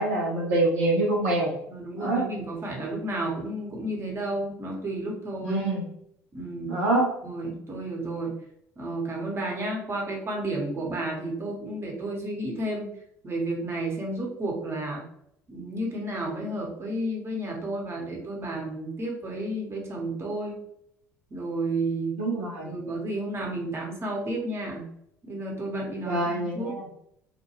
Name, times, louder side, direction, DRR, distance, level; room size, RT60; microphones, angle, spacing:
voice 1, 0.0-1.5 2.0-2.3 5.4-5.9 6.7-7.1 22.2-22.7 26.0-26.8, right 2 dB, 75° right, -3 dB, 0.6 m, -25 dB
voice 2, 1.7-5.6 6.3-6.8 7.2-8.3 8.8-12.9 13.2-15.0 15.5-20.6 21.3-22.2 22.6-24.9 25.3-26.7, right 1 dB, 30° right, -1 dB, 0.9 m, -32 dB
2.2 x 2.1 x 2.9 m, 0.73 s
figure-of-eight pair, 60°, 9 cm